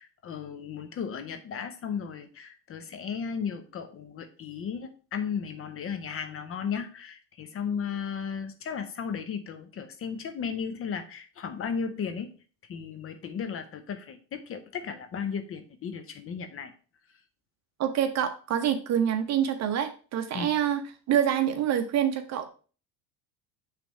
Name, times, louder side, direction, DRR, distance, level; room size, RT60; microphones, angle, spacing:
voice 1, 0.0-12.3 12.7-16.7 20.3-20.5, left 6 dB, 35° left, 8 dB, 0.8 m, -35 dB
voice 2, 17.8-20.8 21.1-22.5, right 9 dB, 40° right, 7 dB, 1.0 m, -26 dB
6.1 x 3.4 x 5.5 m, 0.38 s
supercardioid pair, 120°, 40 cm